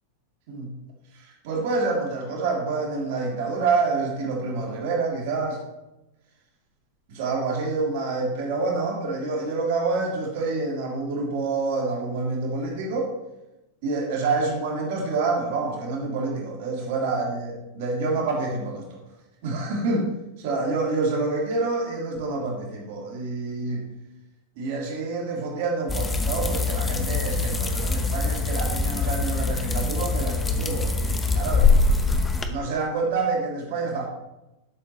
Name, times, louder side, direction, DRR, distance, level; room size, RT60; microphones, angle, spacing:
voice 1, 1.4-5.6 7.1-13.1 13.8-18.8 19.4-20.1 20.4-23.8 24.6-32.1 32.5-34.1, right 3 dB, 50° right, -2 dB, 3.1 m, -27 dB
sound 1, 25.9-32.5, left 3 dB, 15° left, 1.0 m, -23 dB
12.0 x 7.2 x 3.1 m, 0.94 s
figure-of-eight pair, 90°, 0 cm